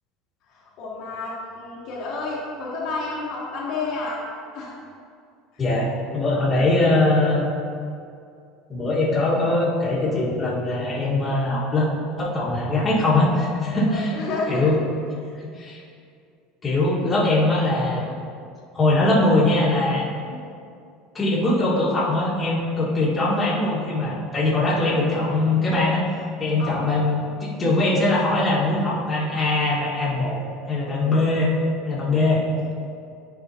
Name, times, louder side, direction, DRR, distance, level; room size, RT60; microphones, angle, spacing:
voice 1, 0.5-4.2 4.5-4.7 13.9-14.6 15.2-15.3 20.2-20.4 26.6-26.8 30.9-31.1 32.0-32.1, left 3 dB, 55° left, -5 dB, 1.4 m, -31 dB
voice 2, 5.6-7.4 8.7-11.9 12.2-14.2 14.5-14.8 15.6-15.8 16.6-18.0 18.7-20.1 21.1-26.0 26.4-30.4 30.7-31.5 31.9-32.7, left 2 dB, 20° left, -7 dB, 1.7 m, -21 dB
10.5 x 4.9 x 2.9 m, 2.3 s
supercardioid pair, 135°, 0 cm